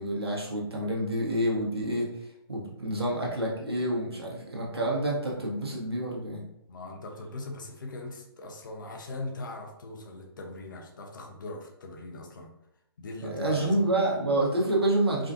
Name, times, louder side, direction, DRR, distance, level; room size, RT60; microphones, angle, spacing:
voice 1, 0.0-6.4 13.2-15.3, right 1 dB, 75° right, -3 dB, 1.4 m, -28 dB
voice 2, 6.7-12.5 13.0-13.8, left 2 dB, 50° left, 2 dB, 0.8 m, -40 dB
4.9 x 2.4 x 2.7 m, 0.80 s
figure-of-eight pair, 130°, 13 cm